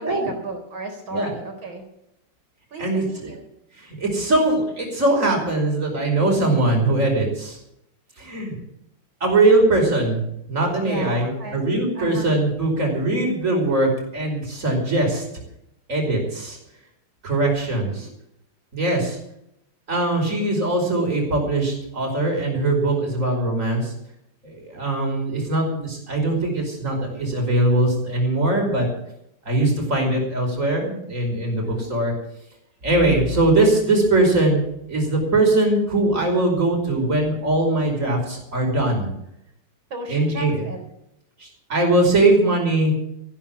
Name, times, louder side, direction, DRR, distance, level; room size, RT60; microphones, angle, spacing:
voice 1, 0.0-1.8 2.7-3.4 10.8-11.6 11.9-12.3 17.9-18.1 31.6-31.9 39.9-40.8, right 2 dB, 65° right, 4 dB, 4.8 m, -34 dB
voice 2, 2.8-3.3 3.8-7.6 8.2-8.5 9.2-10.2 10.5-15.2 15.9-16.6 17.2-18.1 18.7-19.2 19.9-23.9 24.4-28.9 29.5-32.1 32.8-34.6 34.9-39.1 40.1-40.6 41.4-42.9, right 2 dB, 35° right, 1 dB, 5.5 m, -21 dB
14.5 x 12.0 x 7.3 m, 0.78 s
omnidirectional pair, 2.4 m